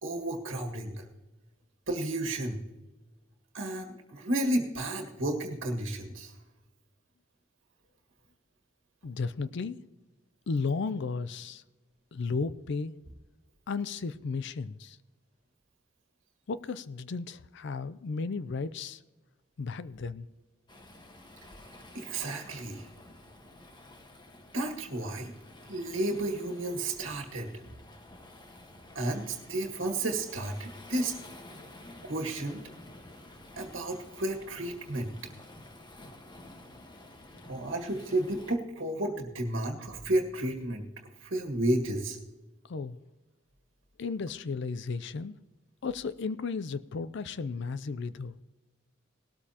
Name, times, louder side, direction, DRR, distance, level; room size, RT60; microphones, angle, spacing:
voice 1, 0.0-1.0 1.9-2.6 3.5-6.3 21.9-22.9 24.5-25.3 25.7-27.5 28.9-31.1 32.0-32.6 33.6-35.1 37.5-40.9 41.2-42.2, right 1 dB, 80° right, 2 dB, 1.6 m, -32 dB
voice 2, 9.0-9.8 10.5-11.6 12.1-12.9 13.7-15.0 16.5-19.0 19.6-20.3 42.7-43.0 44.0-45.4 45.8-48.4, left 4 dB, 65° left, 14 dB, 0.5 m, -34 dB
Waves surf, 20.7-38.6, left 1 dB, 25° left, 1.3 m, -51 dB
18.5 x 13.0 x 2.9 m, 1.1 s
head